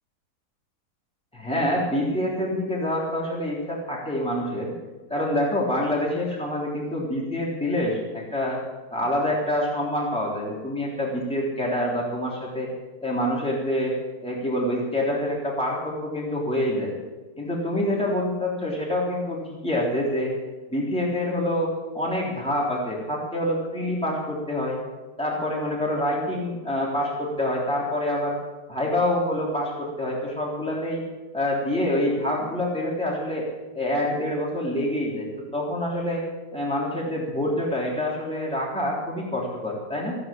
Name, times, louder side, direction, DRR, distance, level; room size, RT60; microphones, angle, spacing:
voice 1, 1.3-4.7 5.1-8.6 8.9-12.7 13.0-13.9 14.2-16.9 17.4-20.3 20.7-24.8 25.2-28.4 28.7-31.0 31.3-33.5 33.7-36.2 36.5-40.2, left 1 dB, 5° left, -4 dB, 3.5 m, -26 dB
15.5 x 9.2 x 8.6 m, 1.2 s
omnidirectional pair, 1.7 m